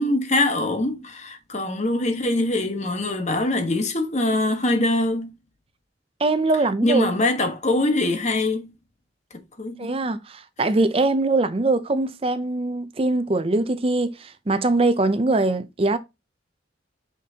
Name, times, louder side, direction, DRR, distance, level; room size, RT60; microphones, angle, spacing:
voice 1, 0.0-5.3 6.8-8.7 9.6-9.9, left 2 dB, 35° left, 1.3 m, -23 dB
voice 2, 6.2-7.1 9.8-16.0, right 2 dB, 30° right, 0.5 m, -22 dB
6.0 x 5.8 x 2.8 m
head